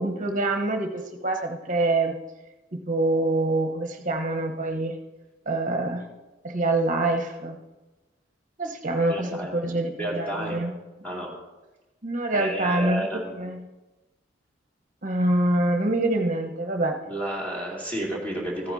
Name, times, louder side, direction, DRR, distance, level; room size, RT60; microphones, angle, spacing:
voice 1, 0.0-2.1 2.7-4.9 5.5-6.0 6.4-7.6 8.6-10.7 11.1-11.2 12.0-13.6 15.0-17.0, right 2 dB, 45° right, 4 dB, 1.0 m, -25 dB
voice 2, 9.1-9.5 10.0-10.6 11.0-11.3 12.3-13.5 17.1-18.7, right 1 dB, 10° left, -4 dB, 2.5 m, -31 dB
14.5 x 9.6 x 2.7 m, 1.1 s
head